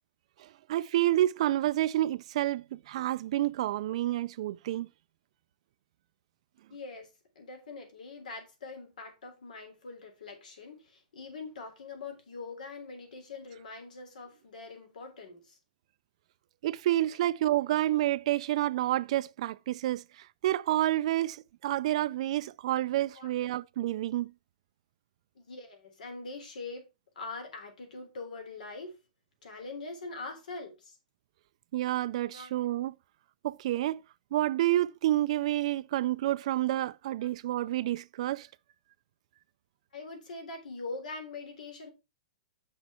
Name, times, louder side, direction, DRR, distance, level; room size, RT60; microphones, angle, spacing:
voice 1, 0.4-4.9 16.6-24.3 31.7-32.9 33.4-34.0 34.3-38.5, right 14 dB, 55° right, 0.4 m, -29 dB
voice 2, 6.7-7.1 7.4-15.6 23.2-23.3 25.4-26.9 27.2-29.0 29.4-31.0 32.3-32.5 39.9-41.9, left 3 dB, 85° left, 3.5 m, -43 dB
7.3 x 6.1 x 4.2 m
hypercardioid pair, 160°, 4 cm